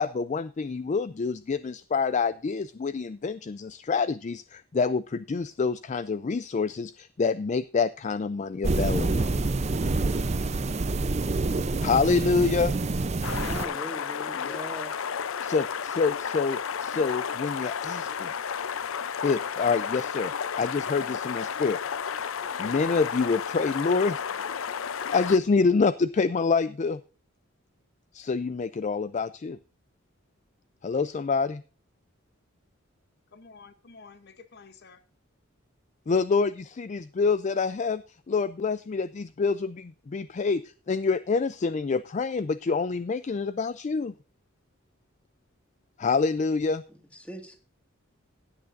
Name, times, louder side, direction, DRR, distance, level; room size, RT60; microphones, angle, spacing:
voice 1, 0.0-9.3 11.8-12.7 15.4-18.3 19.2-20.3 20.6-21.8 22.6-24.2 24.9-27.0 28.1-29.6 30.8-31.6 36.1-44.1 46.0-46.8, left 4 dB, 35° left, 0.4 m, -27 dB
sound 1, 8.6-13.7, right 2 dB, 35° right, 0.6 m, -27 dB
voice 2, 9.6-10.4 33.3-35.0, left 4 dB, 55° left, 0.9 m, -51 dB
sound 2, 13.2-25.4, left 7 dB, 80° left, 0.6 m, -32 dB
voice 3, 13.4-15.0 46.9-47.6, equal, 5° left, 1.9 m, -40 dB
16.5 x 8.8 x 2.5 m
head